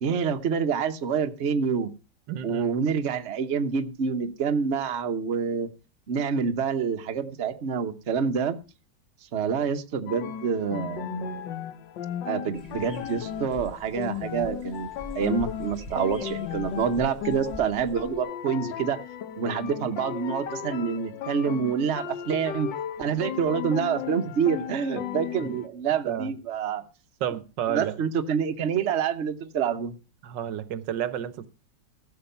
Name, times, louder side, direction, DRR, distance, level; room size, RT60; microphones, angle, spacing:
voice 1, 0.0-1.9 2.4-5.7 6.1-8.6 9.3-11.4 12.2-14.9 15.1-19.0 19.4-22.7 23.0-26.8 27.7-29.9, right 6 dB, 45° right, 1.1 m, -27 dB
voice 2, 2.3-2.7 25.4-25.6 26.0-26.3 27.2-28.0 30.2-31.5, right 10 dB, 80° right, 1.5 m, -31 dB
sound 1, 10.1-25.7, left 10 dB, 85° left, 1.6 m, -36 dB
sound 2, 12.5-18.2, equal, 50° left, 7.6 m, -45 dB
14.5 x 7.0 x 5.6 m
omnidirectional pair, 1.9 m